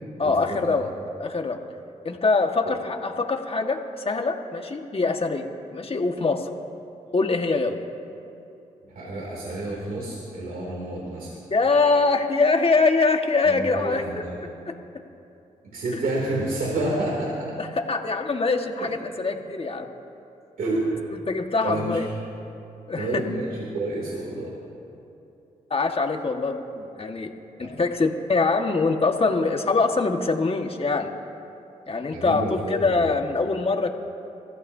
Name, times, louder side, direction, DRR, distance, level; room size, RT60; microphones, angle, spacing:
voice 1, 0.2-0.9 1.2-1.6 2.1-5.5 5.7-6.5 7.1-7.8 11.5-14.1 14.7-14.8 17.6-19.9 21.1-22.1 22.9-23.2 25.7-27.3 27.6-31.1 31.9-33.9, left 3 dB, 40° left, 4 dB, 1.6 m, -23 dB
voice 2, 8.9-11.3 13.4-14.4 15.7-17.3 18.8-18.9 20.6-21.0 21.6-22.0 22.9-24.5 27.6-27.7 32.1-33.1, right 2 dB, 75° right, -4 dB, 2.9 m, -29 dB
28.0 x 14.5 x 2.8 m, 2.8 s
supercardioid pair, 50°, 15 cm